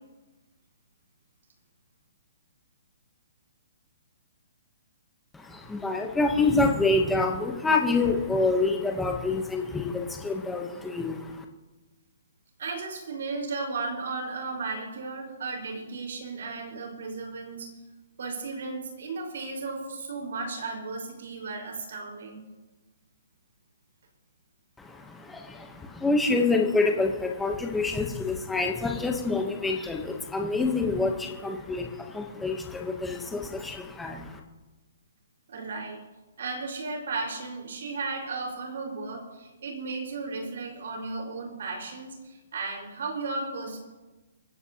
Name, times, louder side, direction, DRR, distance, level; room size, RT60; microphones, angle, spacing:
voice 1, 5.3-11.4 24.8-34.4, left 3 dB, 5° left, 2 dB, 0.9 m, -27 dB
voice 2, 12.6-17.7 18.2-22.4 35.5-36.0 36.4-43.8, right 3 dB, 60° right, 2 dB, 4.6 m, -35 dB
24.5 x 15.0 x 2.8 m, 1.2 s
hypercardioid pair, 180°, 0 cm